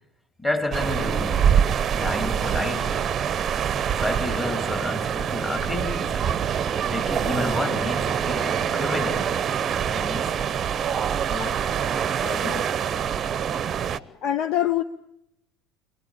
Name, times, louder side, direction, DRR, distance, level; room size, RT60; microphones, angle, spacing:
voice 1, 0.4-1.5 1.9-3.1 3.8-9.3 9.7-10.3, left 2 dB, 15° left, 4.3 m, -30 dB
sound 1, 0.7-14.0, right 8 dB, 35° right, 0.8 m, -25 dB
voice 2, 11.3-11.6 12.2-12.6 13.9-14.8, left 11 dB, 50° left, 0.8 m, -27 dB
26.5 x 18.5 x 8.8 m
figure-of-eight pair, 70°, 0 cm